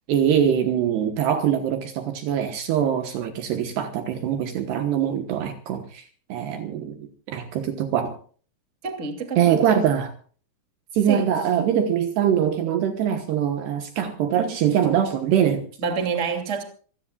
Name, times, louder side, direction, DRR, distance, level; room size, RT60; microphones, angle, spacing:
voice 1, 0.1-8.2 9.4-10.1 10.9-15.6, right 9 dB, 70° right, 3.1 m, -23 dB
voice 2, 8.8-9.8 11.1-11.3 15.8-16.6, right 5 dB, 20° right, 2.0 m, -28 dB
26.5 x 17.5 x 2.4 m
omnidirectional pair, 5.4 m